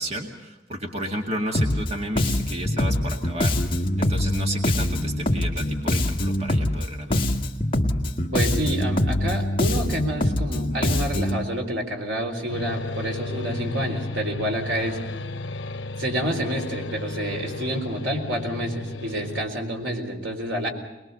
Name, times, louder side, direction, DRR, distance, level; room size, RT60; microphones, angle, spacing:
voice 1, 0.0-7.2, right 1 dB, 35° right, 2 dB, 2.1 m, -32 dB
Bass guitar, 1.5-1.9 2.2-6.8 7.1-11.4, left 1 dB, 30° left, 1.7 m, -24 dB
voice 2, 8.3-15.0 16.0-20.7, equal, 85° right, 4 dB, 4.0 m, -28 dB
sound 1, 12.5-19.4, left 2 dB, 80° left, 0.9 m, -33 dB
22.5 x 22.0 x 6.8 m, 1.1 s
head